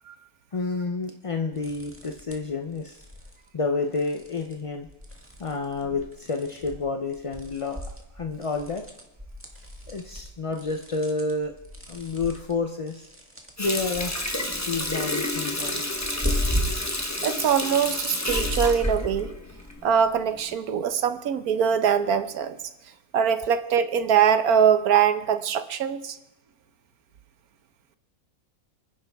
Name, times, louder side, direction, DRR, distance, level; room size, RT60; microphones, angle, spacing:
voice 1, 0.5-3.0 3.5-4.9 5.4-7.8 8.1-8.8 9.9-11.5 11.9-13.1 13.6-14.2 14.7-15.8, left 3 dB, 40° left, 5 dB, 0.4 m, -29 dB
sound 1, 1.5-2.5 2.8-3.4 3.9-4.5 4.9-6.8 7.1-17.0 17.3-19.7, left 1 dB, 10° right, 1.6 m, -35 dB
Water tap faucet, 13.6-19.9 20.3-20.5, left 1 dB, 15° left, 1.0 m, -30 dB
voice 2, 17.2-19.3 19.8-22.6 23.1-26.2, right 8 dB, 80° right, 11 dB, 1.3 m, -22 dB
28.0 x 10.0 x 3.5 m, 0.91 s
omnidirectional pair, 1.5 m